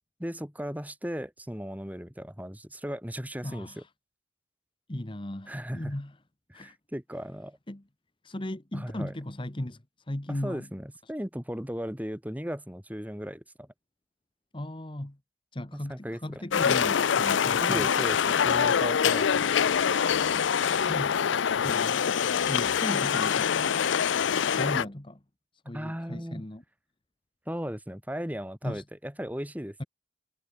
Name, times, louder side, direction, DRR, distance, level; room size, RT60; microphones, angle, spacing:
voice 1, 0.2-3.8 5.5-5.9 6.5-7.6 8.7-9.1 10.3-13.7 15.7-16.4 17.6-19.7 25.7-26.4 27.5-29.9, equal, 10° right, 4.2 m, -37 dB
voice 2, 3.4-3.9 4.9-6.1 6.5-6.8 7.7-7.8 8.2-10.7 14.5-15.2 15.5-17.9 20.7-21.2 21.6-22.1 22.5-23.8 24.5-25.2 25.6-26.6 28.6-28.8, left 1 dB, 25° left, 1.3 m, -36 dB
sound 1, 16.5-24.8, left 7 dB, 80° left, 0.5 m, -25 dB
head